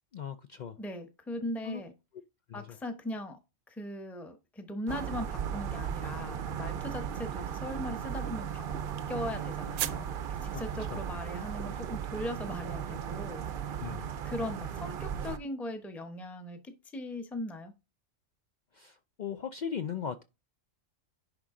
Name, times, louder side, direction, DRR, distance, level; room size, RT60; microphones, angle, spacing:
voice 1, 0.1-0.8 1.6-1.8 2.5-2.8 10.5-10.6 10.9-11.0 13.8-14.1 18.8-20.2, left 7 dB, 75° left, 0.4 m, -38 dB
voice 2, 0.8-1.9 2.5-3.4 3.7-8.6 9.1-10.1 10.4-13.4 14.2-17.7, left 1 dB, ahead, 0.8 m, -39 dB
sound 1, 4.9-15.4, right 8 dB, 55° right, 0.7 m, -36 dB
sound 2, 8.0-11.5, right 12 dB, 80° right, 1.0 m, -42 dB
10.5 x 3.6 x 3.7 m
omnidirectional pair, 1.3 m